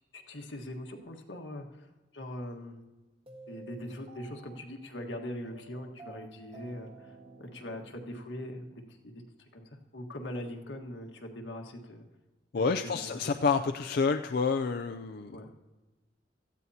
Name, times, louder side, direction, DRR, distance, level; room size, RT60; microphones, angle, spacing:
voice 1, 0.1-1.9 2.1-2.8 3.5-9.1 9.5-9.6 9.9-12.0 12.5-13.3 15.3-15.5, left 1 dB, 85° left, 3 dB, 1.5 m, -41 dB
sound 1, 3.3-9.4, right 4 dB, 35° right, 1.3 m, -52 dB
voice 2, 12.5-15.4, left 5 dB, 60° left, 6 dB, 0.4 m, -29 dB
17.5 x 14.0 x 2.8 m, 1.2 s
head